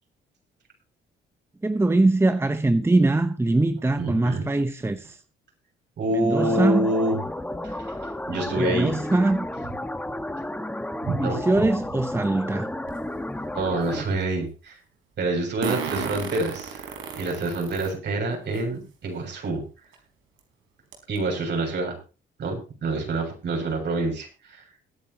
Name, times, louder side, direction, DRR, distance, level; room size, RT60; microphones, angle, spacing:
voice 1, 1.6-5.2 6.1-6.9 8.6-9.5 11.2-12.7, right 2 dB, 10° right, 0.9 m, -22 dB
voice 2, 4.0-4.5 6.0-7.2 7.6-8.9 11.0-11.4 13.5-14.8 15.2-19.6 21.1-22.0 22.4-24.6, right 2 dB, 60° right, 7.2 m, -27 dB
sound 1, 6.4-14.0, left 1 dB, 5° left, 1.6 m, -32 dB
Fart, 12.9-13.0 15.6-17.9 18.6-18.7 19.9-20.0 20.4-20.5 20.9-21.2, right 7 dB, 85° right, 4.7 m, -32 dB
22.0 x 9.9 x 3.0 m
cardioid pair, 90°, 20 cm